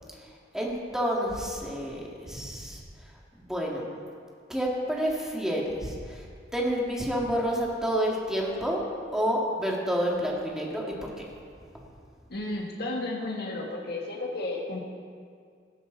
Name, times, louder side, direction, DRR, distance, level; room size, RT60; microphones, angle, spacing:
voice 1, 0.5-2.8 3.4-3.8 4.5-6.3 6.5-8.8 9.1-11.1, equal, 5° right, -3 dB, 2.4 m, -29 dB
voice 2, 12.3-14.8, left 2 dB, 60° left, -1 dB, 1.6 m, -33 dB
18.0 x 12.0 x 4.2 m, 2.2 s
head